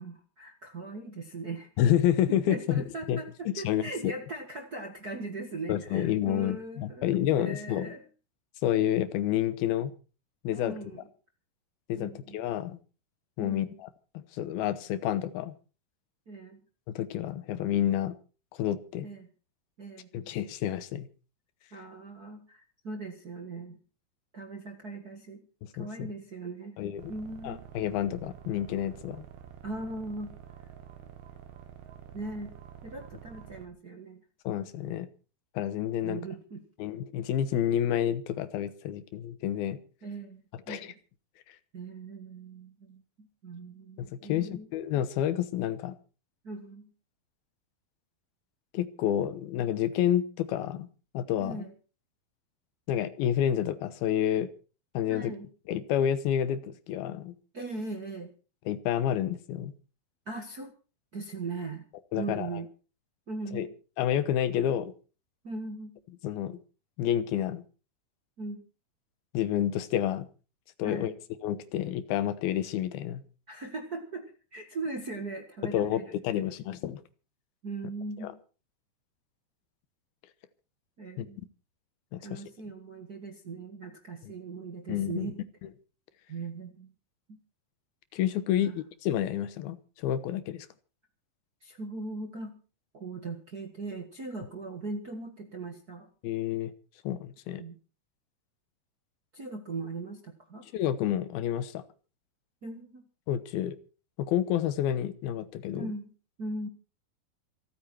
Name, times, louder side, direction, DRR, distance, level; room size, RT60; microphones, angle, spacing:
voice 1, 0.0-1.7 2.3-7.1 7.4-8.0 10.5-11.1 11.9-12.4 13.4-13.8 16.3-16.6 19.0-19.3 19.8-20.1 21.7-23.8 24.3-25.5 25.7-26.8 27.1-27.6 29.6-30.3 32.1-32.5 32.8-34.2 36.0-36.6 40.0-40.9 41.7-44.7 46.4-46.9 51.4-51.7 55.1-55.5 57.5-58.3 60.3-60.7 61.1-61.8 62.2-62.7 63.3-63.7 65.4-66.0 68.4-68.7 70.8-71.1 73.5-76.4 77.6-78.4 81.0-81.4 82.2-85.4 86.3-86.9 87.3-87.4 88.6-88.8 91.6-92.6 92.9-96.1 97.6-97.8 99.3-100.6 102.6-103.0 105.7-106.1 106.4-106.7, right 3 dB, 45° right, 1.3 m, -39 dB
voice 2, 1.8-3.2 3.5-4.1 5.7-7.9 8.6-9.9 10.4-10.8 11.9-12.8 13.4-13.9 14.1-15.5 16.9-18.2 18.5-19.1 20.1-21.1 25.8-25.9 26.8-27.1 27.4-29.2 34.5-35.1 35.6-36.2 36.8-39.8 40.7-40.9 44.0-45.9 48.7-50.9 51.1-51.6 52.9-54.5 54.9-55.3 55.7-57.3 58.7-59.7 62.1-62.5 63.5-63.7 64.0-64.9 66.2-66.6 67.0-67.6 69.3-70.3 70.8-71.1 71.4-73.2 75.6-77.0 78.2-78.3 81.2-81.3 82.1-82.4 84.9-85.3 88.1-90.7 96.2-96.7 97.0-97.6 100.7-101.8 103.3-103.8 104.2-105.9, left 11 dB, 85° left, 3.0 m, -29 dB
sound 1, 27.0-33.7, right 9 dB, 90° right, 3.6 m, -48 dB
27.5 x 9.3 x 4.4 m
omnidirectional pair, 4.2 m